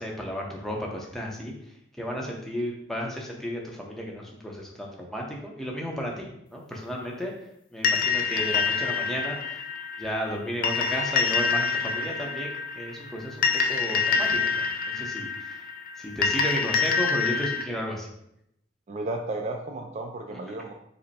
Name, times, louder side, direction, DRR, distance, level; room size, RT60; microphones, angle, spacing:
voice 1, 0.0-1.5 1.9-7.3 7.7-9.4 10.0-15.6 16.0-18.1, equal, ahead, -2 dB, 0.7 m, -33 dB
sound 1, 7.8-17.6, left 5 dB, 45° left, 0.4 m, -26 dB
voice 2, 18.9-20.7, right 2 dB, 35° right, 3 dB, 0.3 m, -33 dB
5.2 x 2.1 x 4.1 m, 0.78 s
head